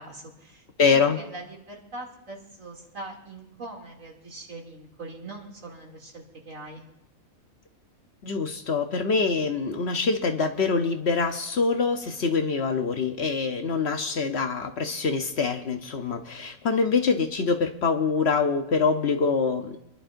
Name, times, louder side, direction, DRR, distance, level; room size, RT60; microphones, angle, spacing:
voice 1, 0.0-6.8, right 2 dB, 65° right, -1 dB, 3.1 m, -42 dB
voice 2, 0.8-1.2 8.2-19.8, left 4 dB, 55° left, 6 dB, 1.0 m, -25 dB
27.5 x 11.5 x 2.6 m, 0.84 s
omnidirectional pair, 1.4 m